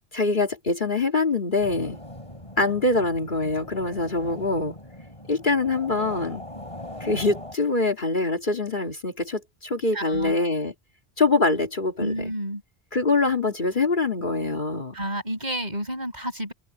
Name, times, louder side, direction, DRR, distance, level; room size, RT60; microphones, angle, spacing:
voice 1, 0.0-2.0 2.6-4.7 5.3-6.4 7.0-10.7 11.2-12.3 12.9-14.9, left 3 dB, 50° left, 2.6 m, -24 dB
sound 1, 1.6-7.5, left 1 dB, 30° left, 5.2 m, -40 dB
voice 2, 9.9-10.4 12.0-12.6 14.9-16.5, right 1 dB, 40° right, 7.5 m, -30 dB
open air
omnidirectional pair, 1.1 m